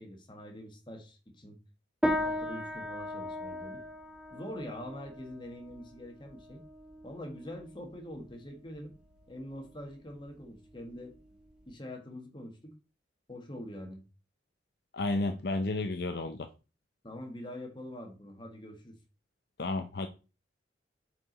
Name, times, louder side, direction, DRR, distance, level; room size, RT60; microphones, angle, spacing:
voice 1, 0.0-1.6 2.1-3.8 4.3-6.6 7.0-8.9 9.3-11.1 11.7-12.7 13.3-14.0 17.0-19.0, left 1 dB, 25° left, 1.6 m, -44 dB
sound 1, 2.0-11.7, left 1 dB, 5° right, 1.1 m, -38 dB
voice 2, 14.9-16.5 19.6-20.1, left 2 dB, 60° left, 0.6 m, -32 dB
7.3 x 4.9 x 3.9 m
head